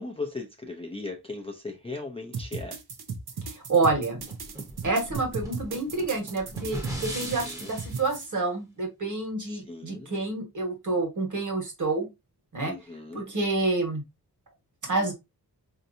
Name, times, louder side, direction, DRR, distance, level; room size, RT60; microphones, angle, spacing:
voice 1, 0.0-2.7 7.5-7.7 9.7-10.1 12.7-13.2, left 3 dB, 15° left, 0.5 m, -37 dB
sound 1, 2.3-8.2, right 5 dB, 75° right, 0.8 m, -36 dB
voice 2, 3.5-4.2 4.8-12.1 12.5-12.7 13.1-14.0 14.8-15.1, right 3 dB, 50° right, 1.4 m, -28 dB
sound 2, 4.2-8.1, right 1 dB, 10° right, 0.8 m, -38 dB
4.4 x 2.8 x 2.6 m
wide cardioid pair, 155°, 39 cm